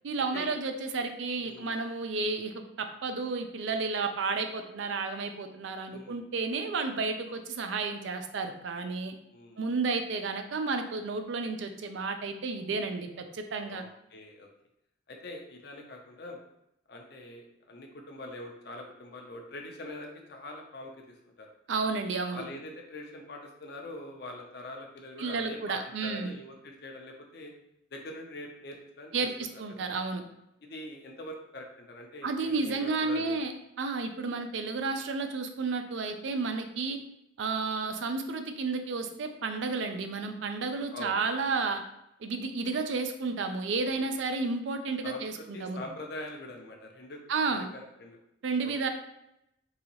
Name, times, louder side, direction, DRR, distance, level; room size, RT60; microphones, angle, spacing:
voice 1, 0.0-9.1 9.6-13.8 21.7-22.5 25.2-26.3 29.1-30.2 32.2-33.5 33.8-37.0 37.4-41.8 42.2-45.9 47.3-47.7 48.4-48.9, right 4 dB, 70° right, 7 dB, 0.4 m, -32 dB
voice 2, 1.4-1.7 5.9-6.2 7.3-7.4 9.3-9.6 13.7-14.5 15.1-16.4 16.9-21.5 22.3-27.5 27.9-29.3 29.7-29.9 30.6-33.4 40.9-41.5 43.9-44.0 45.0-45.2 45.5-48.2, left 1 dB, 55° left, 2 dB, 0.6 m, -44 dB
3.9 x 2.8 x 2.9 m, 0.81 s
head